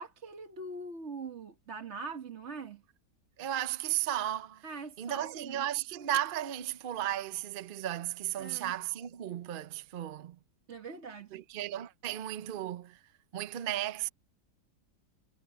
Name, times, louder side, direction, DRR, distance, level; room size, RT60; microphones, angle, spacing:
voice 1, 0.0-2.8 4.6-5.6 8.4-8.7 10.7-11.4, right 4 dB, 40° right, 1.6 m, -42 dB
voice 2, 3.4-4.6 5.0-10.4 11.3-13.0 13.3-14.1, right 12 dB, 80° right, 0.4 m, -35 dB
omnidirectional pair, 2.0 m